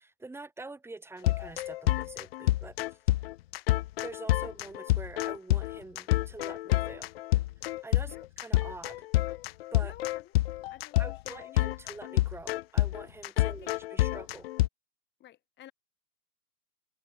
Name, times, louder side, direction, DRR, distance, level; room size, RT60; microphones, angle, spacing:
voice 1, 0.0-2.8 4.0-7.1 7.8-9.0 9.7-9.9 11.0-14.5, right 3 dB, 5° right, 5.0 m, -45 dB
sound 1, 1.2-14.7, left 16 dB, 40° left, 0.7 m, -28 dB
voice 2, 9.8-10.4 10.7-11.7 13.4-13.8 15.2-15.7, left 13 dB, 20° left, 7.0 m, -51 dB
hypercardioid pair, 135°, 47 cm